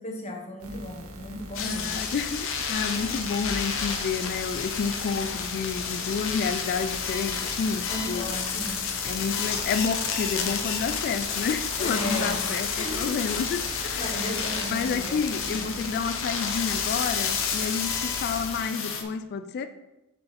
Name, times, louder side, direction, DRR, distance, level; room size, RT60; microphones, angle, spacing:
voice 1, 0.0-2.0 7.9-8.9 11.8-12.5 12.8-13.1 13.9-15.7, left 1 dB, 30° left, 1 dB, 1.1 m, -35 dB
sound 1, 0.6-18.6, equal, 90° right, 0.9 m, -43 dB
sound 2, 1.5-19.0, left 6 dB, 65° left, 0.8 m, -30 dB
voice 2, 1.6-8.3 9.0-14.3 14.7-19.7, left 5 dB, 50° left, 10 dB, 0.3 m, -30 dB
7.7 x 4.6 x 3.4 m, 0.97 s
head